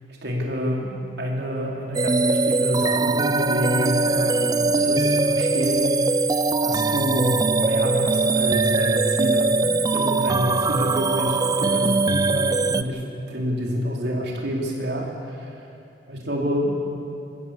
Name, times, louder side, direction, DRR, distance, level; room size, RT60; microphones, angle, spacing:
voice 1, 0.2-6.1 6.6-9.6 9.9-15.5 16.1-16.8, equal, 70° right, -1 dB, 4.1 m, -28 dB
sound 1, 1.9-12.8, right 3 dB, 20° right, 0.5 m, -21 dB
27.5 x 15.0 x 7.6 m, 2.6 s
head